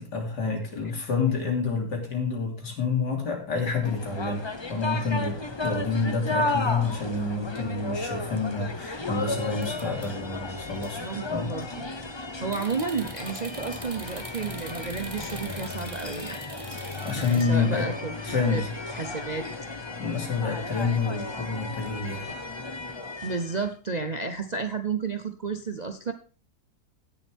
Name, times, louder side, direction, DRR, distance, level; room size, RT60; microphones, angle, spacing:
voice 1, 0.0-11.0 11.3-11.6 17.0-17.9 18.2-18.7 20.0-22.3, left 4 dB, 85° left, 1 dB, 3.5 m, -28 dB
sound 1, 3.8-23.7, left 2 dB, 20° left, 0.7 m, -34 dB
sound 2, 9.5-10.3 10.8-10.9 11.3-11.8 12.5-17.4, right 3 dB, 25° right, 0.9 m, -44 dB
voice 2, 11.0-16.4 17.1-18.6 18.9-19.4 23.2-26.1, right 4 dB, 50° right, 7 dB, 0.5 m, -32 dB
16.5 x 7.2 x 3.5 m, 0.37 s
omnidirectional pair, 1.8 m